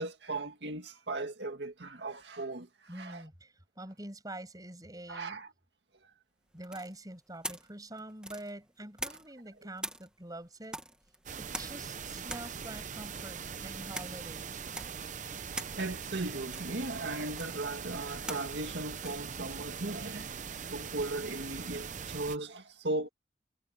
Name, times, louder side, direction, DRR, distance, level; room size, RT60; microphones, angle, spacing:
voice 1, 0.0-2.7 2.9-3.2 5.1-5.5 15.0-15.2 15.8-20.4 20.7-23.1, right 2 dB, 90° right, 2.0 m, -37 dB
voice 2, 2.9-5.4 6.5-10.8 11.4-14.6, right 1 dB, 20° right, 7.1 m, -46 dB
sound 1, 6.6-9.5 9.8-20.7, right 1 dB, 5° right, 1.6 m, -45 dB
sound 2, 11.3-22.4, right 6 dB, 45° right, 0.7 m, -41 dB
head